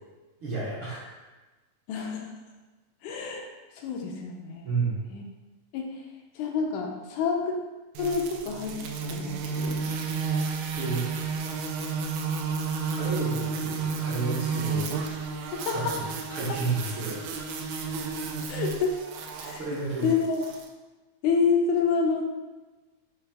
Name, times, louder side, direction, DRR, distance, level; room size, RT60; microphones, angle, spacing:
voice 1, 0.4-1.1 4.6-5.0 10.7-11.1 12.9-14.9 15.7-17.2 19.5-20.1, right 4 dB, 65° right, -9 dB, 1.3 m, -31 dB
voice 2, 1.9-2.3 3.0-3.5 3.8-4.7 5.1-5.2 5.7-6.0 6.4-7.6 8.0-8.8 9.1-9.8 15.5-16.0 18.5-19.0 19.4-19.6 20.0-20.4 21.2-22.3, left 5 dB, 85° left, 1 dB, 2.1 m, -28 dB
sound 1, 7.9-20.7, right 5 dB, 85° right, 1.5 m, -32 dB
5.9 x 2.6 x 3.4 m, 1.2 s
omnidirectional pair, 3.5 m